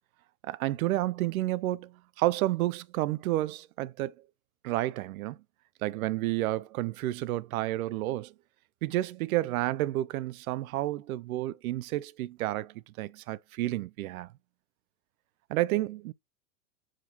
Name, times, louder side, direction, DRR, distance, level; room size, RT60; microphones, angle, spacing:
voice 1, 0.4-4.1 4.6-5.4 5.8-8.3 8.8-14.3 15.5-16.1, right 16 dB, 70° right, 0.5 m, -30 dB
5.1 x 2.7 x 3.9 m
hypercardioid pair, 120°, 45 cm